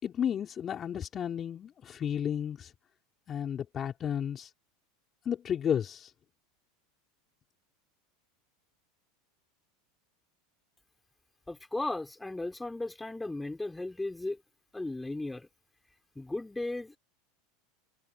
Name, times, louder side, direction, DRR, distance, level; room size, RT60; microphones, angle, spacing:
voice 1, 0.0-2.7 3.3-4.5 5.3-6.1, left 9 dB, 35° left, 5.2 m, -32 dB
voice 2, 11.5-14.4 14.7-15.5 16.2-17.0, left 2 dB, 10° left, 5.5 m, -36 dB
hypercardioid pair, 85°, 0 cm